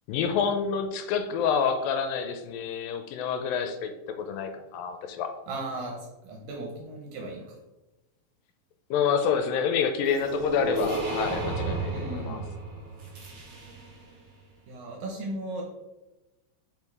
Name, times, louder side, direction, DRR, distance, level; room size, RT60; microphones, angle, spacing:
voice 1, 0.1-3.9 4.2-5.3 8.9-12.4, left 6 dB, 85° left, 7 dB, 2.3 m, -28 dB
voice 2, 5.5-7.6 11.9-12.5 14.7-15.6, right 2 dB, 75° right, -1 dB, 2.6 m, -36 dB
sound 1, 10.1-14.1, right 3 dB, 55° right, 1.4 m, -33 dB
5.5 x 4.6 x 4.8 m, 1.0 s
omnidirectional pair, 4.1 m